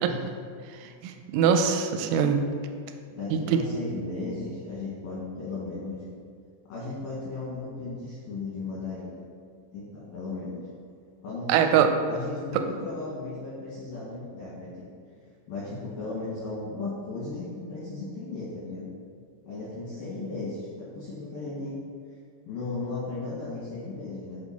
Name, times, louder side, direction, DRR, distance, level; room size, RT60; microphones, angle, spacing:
voice 1, 1.0-2.4 3.3-3.6 11.5-11.9, right 8 dB, 85° right, 6 dB, 3.0 m, -22 dB
voice 2, 3.1-6.0 6.7-9.2 9.7-10.6 11.2-11.8 12.1-14.9 15.5-18.9 19.5-21.7 22.5-24.4, left 3 dB, 75° left, -8 dB, 2.1 m, -36 dB
7.9 x 4.5 x 4.1 m, 2.2 s
omnidirectional pair, 5.7 m